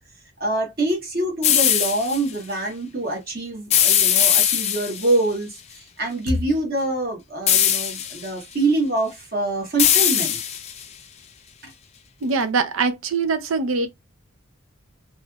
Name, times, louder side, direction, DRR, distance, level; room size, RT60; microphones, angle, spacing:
voice 1, 0.4-10.4 11.6-11.7, right 2 dB, 45° right, 1.0 m, -25 dB
sound 1, 1.4-2.2 3.7-5.1 7.5-8.3 9.8-10.8, left 10 dB, 30° left, 0.3 m, -19 dB
voice 2, 12.2-13.9, right 4 dB, 85° right, 0.5 m, -22 dB
3.0 x 2.8 x 2.3 m
head